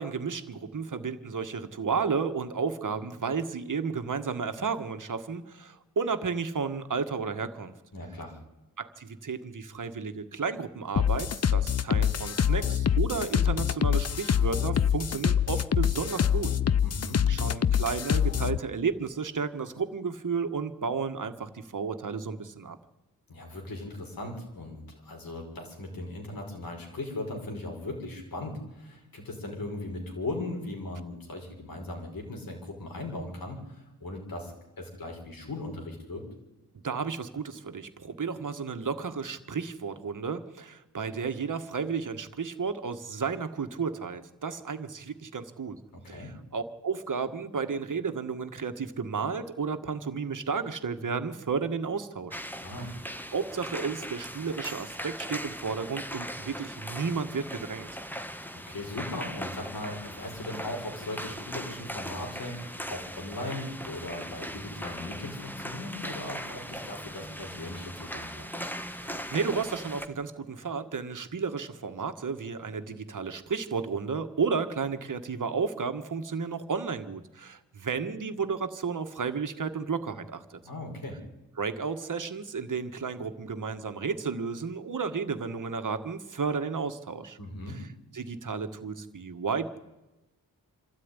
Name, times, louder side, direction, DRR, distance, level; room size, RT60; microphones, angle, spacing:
voice 1, 0.0-7.7 8.8-16.5 17.3-22.8 36.8-45.8 46.1-52.4 53.3-57.9 69.0-80.6 81.6-87.4 87.7-87.9 88.1-89.8, right 5 dB, 55° right, 8 dB, 1.7 m, -32 dB
voice 2, 7.9-8.3 16.8-17.2 23.3-36.2 45.9-46.3 52.6-52.9 58.5-68.5 80.6-81.2 87.4-87.8, left 2 dB, 65° left, 2 dB, 5.6 m, -38 dB
sound 1, 11.0-18.6, left 8 dB, 40° left, 0.7 m, -25 dB
sound 2, 52.3-70.1, equal, 5° left, 1.5 m, -39 dB
26.0 x 13.0 x 9.9 m, 1.1 s
cardioid pair, 65°, 37 cm